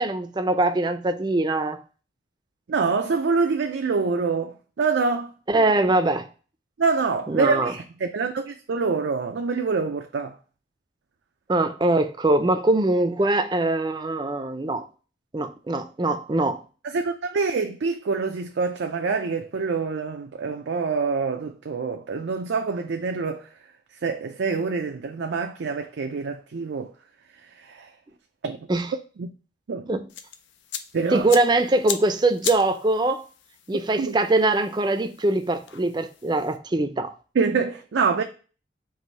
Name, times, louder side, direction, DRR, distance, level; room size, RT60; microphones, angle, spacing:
voice 1, 0.0-1.8 5.5-6.3 7.3-7.7 11.5-14.8 15.3-16.6 28.7-28.9 29.9-30.1 31.1-33.2 33.7-37.1, right 2 dB, 25° right, 0.4 m, -22 dB
voice 2, 2.7-5.3 6.8-10.3 16.8-23.5 24.0-26.9 27.6-27.9 28.4-28.7 29.2-29.3 29.7-29.8 30.9-31.3 34.0-34.2 37.4-38.2, right 4 dB, 85° right, 0.4 m, -26 dB
sound 1, 30.1-36.6, left 8 dB, 90° left, 0.5 m, -38 dB
4.8 x 2.6 x 4.0 m
head